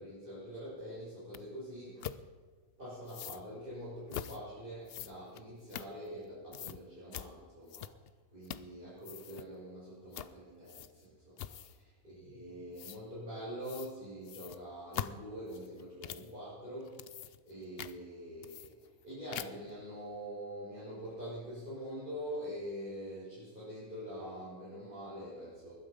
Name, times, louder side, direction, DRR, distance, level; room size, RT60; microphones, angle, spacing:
voice 1, 0.0-2.2 2.8-7.9 8.3-11.5 12.0-17.1 17.4-18.7 19.0-25.7, equal, 35° right, -10 dB, 6.8 m, -44 dB
sound 1, 1.3-1.4 2.0-2.2 3.1-3.4 4.1-4.4 4.9-6.2 6.5-6.8 7.1-7.3 7.7-8.1 8.4-8.7 9.0-9.5 10.1-10.3 10.7-11.0 11.4-11.8 12.8-13.0 13.6-13.9 14.2-16.3 16.8-17.5 17.8-17.9 18.4-19.0 19.3-19.7, left 10 dB, 60° left, 0.6 m, -43 dB
20.0 x 12.5 x 5.3 m, 1.4 s
omnidirectional pair, 1.5 m